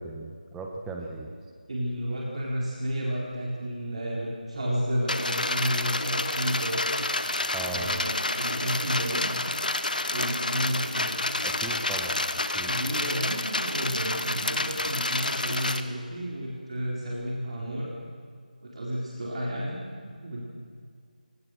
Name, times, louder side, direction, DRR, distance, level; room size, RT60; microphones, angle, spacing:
voice 1, 0.0-1.3 7.5-8.0 11.4-12.2 12.5-12.8, right 2 dB, 5° right, 1 dB, 1.1 m, -37 dB
voice 2, 1.7-6.8 7.7-9.3 10.1-11.3 12.6-17.9 18.6-19.8 20.0-20.4, equal, 45° right, -4 dB, 4.4 m, -31 dB
sound 1, 5.1-15.8, left 2 dB, 65° left, 1.5 m, -29 dB
28.0 x 18.5 x 6.5 m, 2.2 s
figure-of-eight pair, 170°, 5 cm